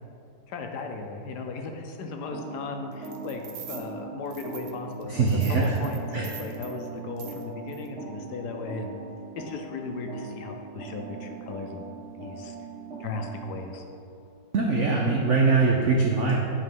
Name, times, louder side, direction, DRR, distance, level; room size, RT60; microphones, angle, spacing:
voice 1, 0.5-9.0 9.4-12.6 13.0-13.8, left 3 dB, 70° left, 4 dB, 1.1 m, -37 dB
sound 1, 2.3-13.6, right 4 dB, 40° right, 1.2 m, -40 dB
sound 2, 3.0-3.8 4.3-5.0 5.3-6.8 7.2-7.4 7.7-7.9, right 8 dB, 65° right, 1.1 m, -44 dB
voice 2, 5.1-5.7 6.1-6.3 14.5-16.4, right 4 dB, 85° right, -1 dB, 0.6 m, -22 dB
8.8 x 3.7 x 5.3 m, 2.6 s
omnidirectional pair, 2.2 m